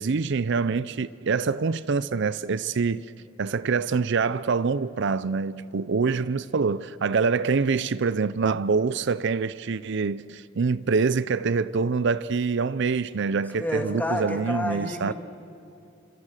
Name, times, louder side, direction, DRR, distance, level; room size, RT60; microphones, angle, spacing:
voice 1, 0.0-3.1 3.4-15.1, right 5 dB, 60° right, 0.5 m, -25 dB
voice 2, 13.6-15.1, left 1 dB, 10° left, 2.6 m, -29 dB
30.0 x 26.0 x 6.5 m
head